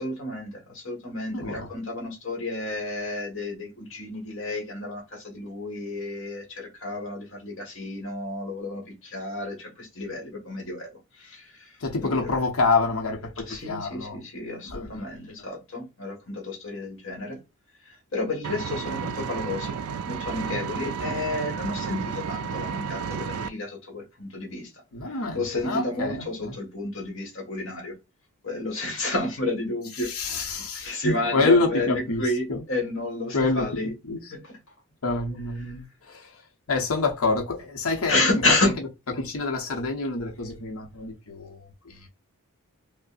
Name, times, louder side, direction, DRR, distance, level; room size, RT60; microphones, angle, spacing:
voice 1, 0.0-12.3 13.5-17.4 17.8-19.8 20.1-24.7 25.0-27.9 28.4-33.9 34.3-34.6 35.6-35.8 38.1-38.7, left 2 dB, 60° left, 1.5 m, -31 dB
voice 2, 1.3-1.7 11.8-14.2 14.6-15.0 21.0-21.2 24.9-26.5 30.0-32.2 32.5-32.6 33.3-33.7 34.1-34.2 35.0-36.4 36.7-38.2 38.6-38.7 39.2-42.1, left 3 dB, 80° left, 0.9 m, -27 dB
Engine, 18.4-23.5, right 6 dB, 80° right, 0.4 m, -32 dB
5.1 x 2.1 x 2.5 m
head